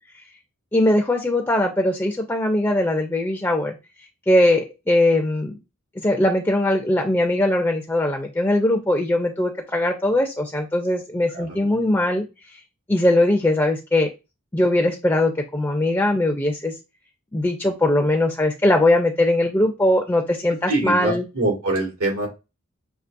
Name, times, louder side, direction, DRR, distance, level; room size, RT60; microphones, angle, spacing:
voice 1, 0.7-3.8 4.3-5.5 6.0-12.2 12.5-12.6 12.9-14.1 14.5-16.7 17.3-21.2, left 1 dB, 10° left, 3 dB, 0.5 m, -20 dB
voice 2, 20.7-22.3, right 2 dB, 90° right, -1 dB, 2.1 m, -24 dB
6.0 x 3.0 x 2.5 m, 0.26 s
head